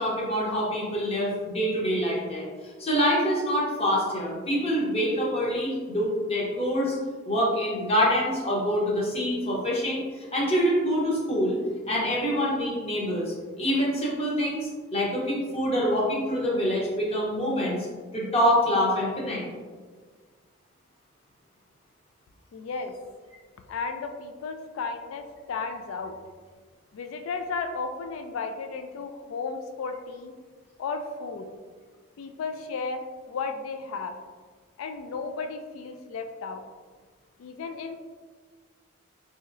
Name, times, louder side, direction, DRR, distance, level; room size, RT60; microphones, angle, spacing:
voice 1, 0.0-2.5 2.8-6.9 7.2-11.6 11.9-17.9 18.1-19.4, equal, 30° left, -4 dB, 0.8 m, -26 dB
voice 2, 22.5-22.9 23.7-26.1 26.9-30.3 30.8-31.5 32.2-34.2 34.8-36.6 37.4-38.0, left 4 dB, 85° left, 6 dB, 0.3 m, -34 dB
4.1 x 2.8 x 2.5 m, 1.5 s
head